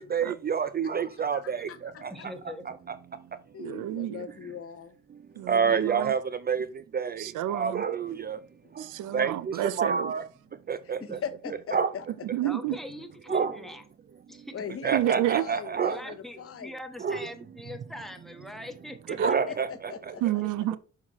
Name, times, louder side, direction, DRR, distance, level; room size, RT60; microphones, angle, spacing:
voice 1, 0.1-1.6 5.5-6.2 6.5-6.7 6.9-7.1 7.5-8.4 9.1-9.3 9.8-10.2 10.7-11.0 11.7-11.9 13.3-13.5 14.8-16.0 17.0-17.2 19.2-19.7, right 6 dB, 30° right, 0.4 m, -26 dB
voice 2, 1.3-2.3 3.5-5.0 8.4-8.7 10.8-12.1 12.4-12.5 14.5-16.7 19.2-20.4, left 7 dB, 50° left, 0.9 m, -40 dB
voice 3, 2.1-2.6 5.7-5.8 11.1-11.2 12.4-13.8 14.3-14.5 15.8-19.5 19.9-20.0 20.4-20.5, left 1 dB, ahead, 1.3 m, -42 dB
voice 4, 3.6-4.3 5.4-6.1 7.2-7.8 8.8-10.1 12.3-12.8 14.9-15.5 19.2-19.4 20.2-20.8, right 14 dB, 90° right, 0.5 m, -30 dB
6.4 x 5.7 x 3.0 m
cardioid pair, 90°, 30 cm